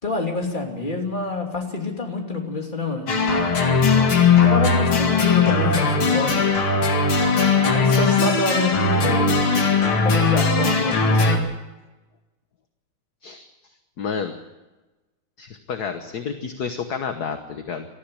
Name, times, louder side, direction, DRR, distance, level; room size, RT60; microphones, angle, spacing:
voice 1, 0.0-3.1 4.3-6.4 7.6-9.3 10.0-11.4, left 3 dB, 20° left, 1 dB, 3.0 m, -27 dB
sound 1, 3.1-11.4, left 4 dB, 75° left, 3.0 m, -19 dB
voice 2, 14.0-14.3 15.4-17.9, left 6 dB, 50° left, 6 dB, 1.5 m, -30 dB
19.5 x 14.0 x 9.8 m, 1.1 s
omnidirectional pair, 2.4 m